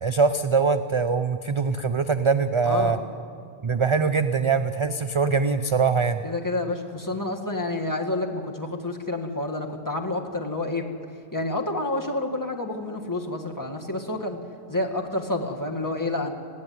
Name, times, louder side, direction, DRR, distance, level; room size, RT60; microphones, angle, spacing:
voice 1, 0.0-3.0 3.6-6.2, right 5 dB, 40° right, 9 dB, 0.5 m, -23 dB
voice 2, 2.6-3.1 6.2-10.9 11.3-14.4 14.7-16.3, left 2 dB, 20° left, 1 dB, 1.8 m, -29 dB
20.0 x 15.5 x 9.5 m, 2.4 s
omnidirectional pair, 1.1 m